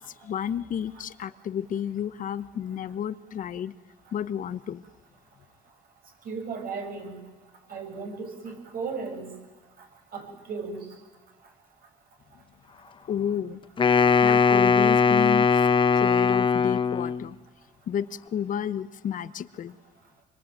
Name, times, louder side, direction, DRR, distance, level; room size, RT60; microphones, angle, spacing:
voice 1, 0.1-3.7 4.1-4.8 13.1-13.6 14.2-15.7 16.0-17.4 17.9-19.8, left 9 dB, 50° left, 14 dB, 1.1 m, -31 dB
voice 2, 6.2-7.2 7.7-9.3 10.1-10.8, right 4 dB, 60° right, 2 dB, 7.8 m, -35 dB
Wind instrument woodwind instrument, 13.8-17.3, left 5 dB, 30° left, 1.0 m, -20 dB
26.0 x 24.0 x 9.1 m, 1.2 s
cardioid pair, 110°, 17 cm